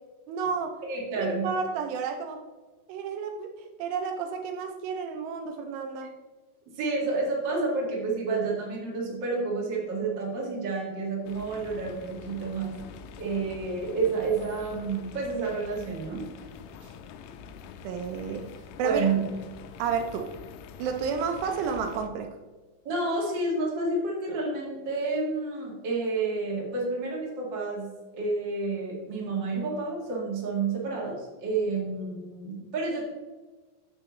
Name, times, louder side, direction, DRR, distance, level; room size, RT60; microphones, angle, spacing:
voice 1, 0.3-0.8 1.2-2.4 2.9-6.1 17.8-18.5 18.8-19.1 19.8-20.3 20.8-22.4, right 6 dB, 80° right, 5 dB, 2.5 m, -31 dB
voice 2, 0.8-1.5 6.7-12.8 13.2-16.3 16.8-16.9 18.8-19.2 22.8-27.9 28.1-33.0, right 3 dB, 65° right, -4 dB, 1.1 m, -30 dB
sound 1, 11.3-22.1, left 6 dB, 90° left, 2.4 m, -46 dB
8.9 x 6.8 x 3.1 m, 1.3 s
omnidirectional pair, 5.3 m